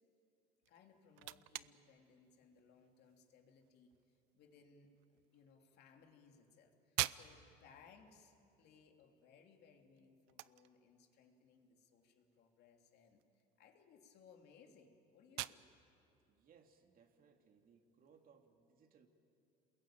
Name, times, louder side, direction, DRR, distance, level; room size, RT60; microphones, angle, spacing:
sound 1, 0.6-18.3, right 20 dB, 85° right, 0.6 m, -50 dB
voice 1, 0.7-3.9 4.3-15.7, left 5 dB, 60° left, 3 dB, 3.0 m, -65 dB
voice 2, 16.3-19.1, right 6 dB, 50° right, 5 dB, 2.6 m, -67 dB
28.0 x 21.5 x 9.0 m, 2.7 s
cardioid pair, 105°, 19 cm